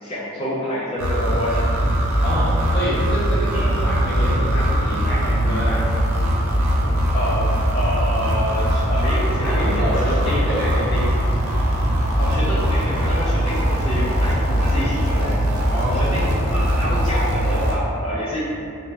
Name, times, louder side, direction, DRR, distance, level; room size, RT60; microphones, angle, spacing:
voice 1, 0.0-1.7 3.5-3.7 7.1-10.7 12.2-15.4 15.9-18.4, equal, 25° left, -11 dB, 0.4 m, -27 dB
sound 1, 1.0-17.8, equal, 75° right, 0.5 m, -21 dB
voice 2, 2.2-5.8 9.4-11.3 15.7-16.4, equal, 50° left, -7 dB, 0.7 m, -27 dB
3.1 x 2.1 x 2.6 m, 2.5 s
head